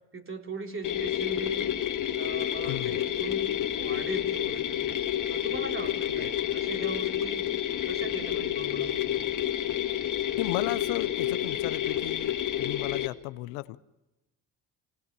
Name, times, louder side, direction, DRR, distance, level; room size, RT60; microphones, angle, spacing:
voice 1, 0.1-1.7 2.1-4.8 5.3-7.5 7.9-9.1, right 3 dB, 30° right, 3.7 m, -39 dB
sound 1, 0.8-13.1, left 11 dB, 50° left, 1.9 m, -29 dB
voice 2, 2.6-3.0 6.2-6.3 10.4-13.8, left 18 dB, 90° left, 0.8 m, -35 dB
27.0 x 18.5 x 8.3 m
supercardioid pair, 75°, 39 cm